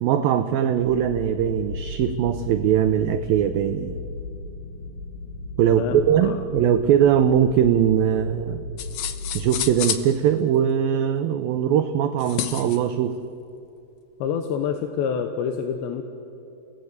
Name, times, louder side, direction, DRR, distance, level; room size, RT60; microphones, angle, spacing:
voice 1, 0.0-4.0 5.6-8.6 9.3-13.2, right 9 dB, 80° right, 9 dB, 2.1 m, -21 dB
sound 1, 0.7-9.8, left 3 dB, 50° left, 2.0 m, -36 dB
voice 2, 5.7-6.4 14.2-16.0, left 7 dB, 90° left, 5 dB, 3.3 m, -27 dB
sound 2, 8.8-10.1 12.2-12.8, left 10 dB, 70° left, 1.8 m, -29 dB
30.0 x 18.0 x 8.0 m, 2.8 s
omnidirectional pair, 5.0 m